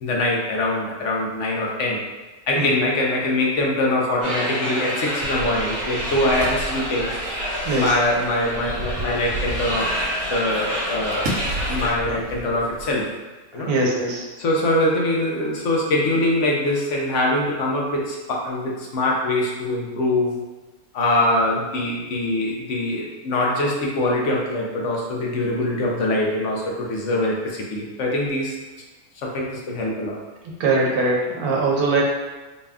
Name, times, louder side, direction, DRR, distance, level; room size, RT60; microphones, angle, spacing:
voice 1, 0.0-2.0 2.5-7.1 7.7-9.9 10.3-11.3 11.7-13.1 13.5-13.7 14.4-20.3 20.9-28.5 29.2-30.2, left 1 dB, 60° left, -2 dB, 0.9 m, -23 dB
sound 1, 4.2-11.9, equal, 10° right, 0.8 m, -28 dB
sound 2, 5.2-13.0, right 1 dB, 60° right, 0.9 m, -33 dB
voice 2, 13.6-14.3 30.4-32.0, right 3 dB, 90° right, -2 dB, 1.2 m, -22 dB
4.1 x 2.3 x 3.5 m, 1.2 s
omnidirectional pair, 1.5 m